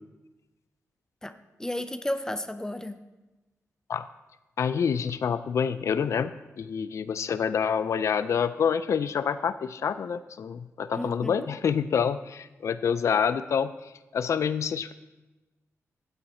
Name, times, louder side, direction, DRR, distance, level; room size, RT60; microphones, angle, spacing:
voice 1, 1.6-3.0 10.9-11.5, left 1 dB, 10° left, 10 dB, 0.5 m, -33 dB
voice 2, 4.6-14.9, left 7 dB, 65° left, 12 dB, 0.3 m, -27 dB
9.0 x 8.0 x 4.3 m, 1.1 s
cardioid pair, 85°, 5 cm